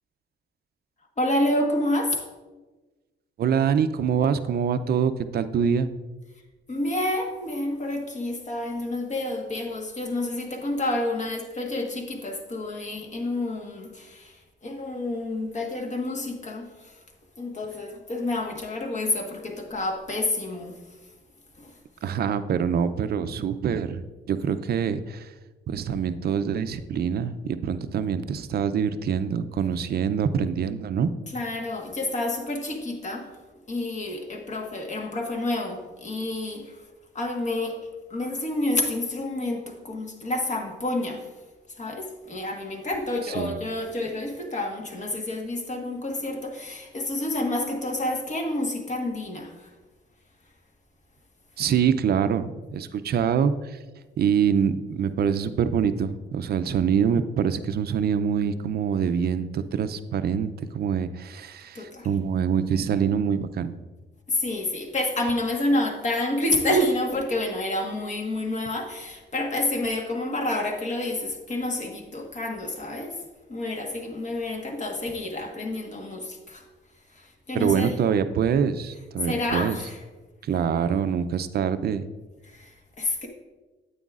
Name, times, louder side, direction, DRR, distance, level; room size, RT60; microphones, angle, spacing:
voice 1, 1.2-2.2 6.7-17.0 17.4-21.1 21.6-21.8 31.3-33.3 33.7-36.9 37.1-37.8 38.1-41.4 41.7-49.7 61.7-62.1 64.3-73.2 73.5-76.7 77.1-78.0 79.2-80.0 82.4-83.3, left 1 dB, 35° left, 2 dB, 1.4 m, -29 dB
voice 2, 3.4-5.9 22.0-24.0 24.3-25.3 25.7-31.1 43.4-43.5 51.6-53.8 54.2-63.7 77.5-79.8 80.4-82.1, right 7 dB, 55° right, 12 dB, 0.5 m, -25 dB
9.2 x 8.3 x 2.4 m, 1.2 s
cardioid pair, 90°, 20 cm